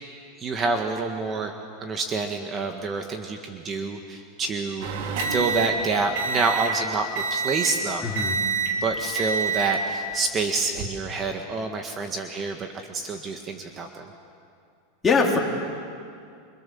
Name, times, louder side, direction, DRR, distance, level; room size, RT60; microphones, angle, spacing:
voice 1, 0.4-1.5 1.8-4.9 5.3-8.1 8.8-14.1, right 4 dB, 25° right, 4 dB, 1.8 m, -28 dB
sound 1, 4.8-6.8 7.2-7.8 8.2-8.8 9.2-9.8 10.6-10.9, right 5 dB, 65° right, 3.4 m, -27 dB
voice 2, 8.0-8.4 15.0-15.4, left 4 dB, 15° left, 0 dB, 3.6 m, -21 dB
30.0 x 25.0 x 7.2 m, 2.3 s
supercardioid pair, 145°, 0 cm